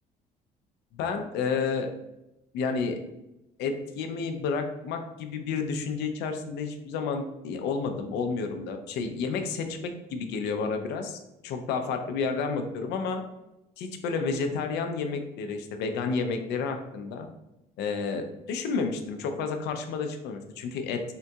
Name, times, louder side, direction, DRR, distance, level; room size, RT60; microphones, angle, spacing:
voice 1, 0.9-1.9 2.5-3.0 3.6-13.2 13.8-17.3 17.8-21.0, left 5 dB, 80° left, 6 dB, 0.4 m, -31 dB
3.6 x 2.3 x 2.7 m, 0.91 s
cardioid pair, 110°, 17 cm